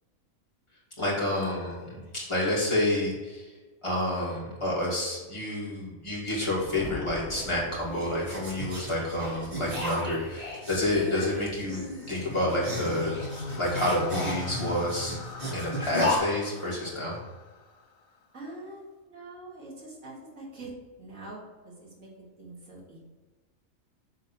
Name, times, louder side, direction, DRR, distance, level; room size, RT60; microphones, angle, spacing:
voice 1, 1.0-3.5 3.8-13.2 13.6-15.2 15.5-17.2, left 1 dB, 20° left, -6 dB, 2.5 m, -29 dB
Thunder, 6.2-8.8, left 1 dB, 5° left, 0.8 m, -43 dB
sound 1, 7.4-16.2, left 1 dB, 40° right, 2.3 m, -34 dB
sound 2, 11.9-18.2, left 4 dB, 85° left, 1.3 m, -41 dB
voice 2, 18.3-20.7 21.0-23.0, right 2 dB, 85° right, -4 dB, 2.7 m, -44 dB
7.4 x 3.8 x 6.2 m, 1.3 s
omnidirectional pair, 1.4 m